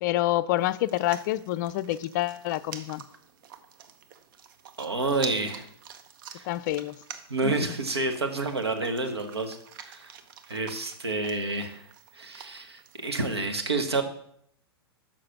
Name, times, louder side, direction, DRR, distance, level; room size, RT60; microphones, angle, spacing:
voice 1, 0.0-3.0 6.5-6.9 7.4-7.7, left 15 dB, 50° left, 0.4 m, -27 dB
sound 1, 0.6-13.5, right 7 dB, 55° right, 0.9 m, -47 dB
voice 2, 4.8-5.6 6.3-6.5 7.3-9.6 9.8-10.1 10.5-11.8 12.1-14.0, right 3 dB, 85° right, 1.2 m, -29 dB
6.7 x 5.8 x 5.9 m
figure-of-eight pair, 100°, 13 cm